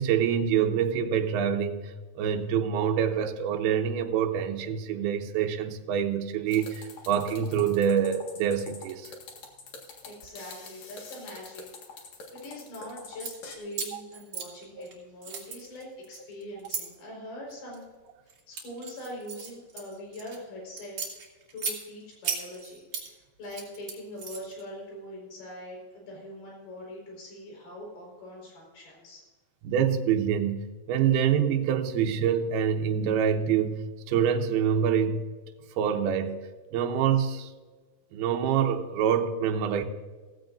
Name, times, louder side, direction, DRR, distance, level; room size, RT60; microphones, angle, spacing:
voice 1, 0.0-9.1 13.9-14.0 14.8-14.9 29.6-35.3 35.8-36.4 36.7-37.5 38.1-39.8, right 8 dB, 80° right, 4 dB, 2.8 m, -26 dB
sound 1, 6.5-13.6, left 4 dB, 55° left, 2.7 m, -45 dB
voice 2, 10.0-12.1 12.3-17.8 18.2-21.2 21.5-29.2, left 1 dB, 75° left, -2 dB, 6.7 m, -43 dB
sound 2, 13.0-13.3 13.7-14.9 15.2-16.8 17.5-17.8 18.3-20.4 20.8-21.8 22.2-23.1 23.4-24.6, right 5 dB, 45° right, 3.2 m, -35 dB
16.0 x 15.5 x 2.6 m, 1.3 s
omnidirectional pair, 4.7 m